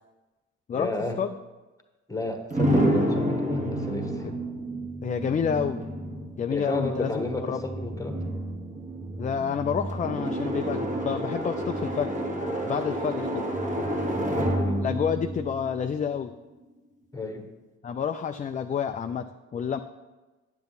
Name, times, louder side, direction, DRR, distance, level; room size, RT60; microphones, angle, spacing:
voice 1, 0.7-1.2 2.1-4.2 6.5-8.2 14.2-15.0 17.1-17.5, left 2 dB, 10° left, 5 dB, 1.2 m, -32 dB
sound 1, 2.5-16.3, right 1 dB, 25° right, 1.4 m, -29 dB
voice 2, 5.0-5.8 6.4-7.6 9.2-12.1 12.6-13.5 14.8-16.3 17.8-19.8, left 7 dB, 25° left, 8 dB, 0.3 m, -29 dB
9.6 x 7.0 x 4.0 m, 1.2 s
cardioid pair, 90°, 30 cm